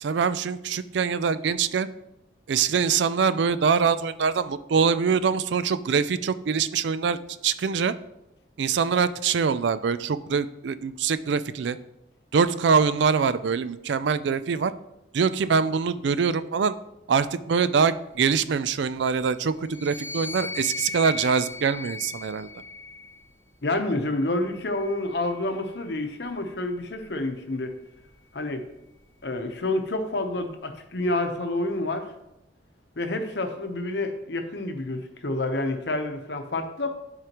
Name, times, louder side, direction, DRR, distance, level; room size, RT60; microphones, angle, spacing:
voice 1, 0.0-1.9 2.5-7.9 8.6-11.8 12.3-14.7 15.1-16.7 17.1-22.5, right 6 dB, 70° right, 14 dB, 0.4 m, -24 dB
sound 1, 19.6-23.2 24.1-25.7, left 3 dB, 10° left, 0.9 m, -38 dB
voice 2, 23.6-27.7 28.3-28.6 29.2-32.1 33.0-36.9, left 2 dB, 60° left, 6 dB, 0.9 m, -28 dB
11.0 x 4.9 x 3.0 m, 0.87 s
head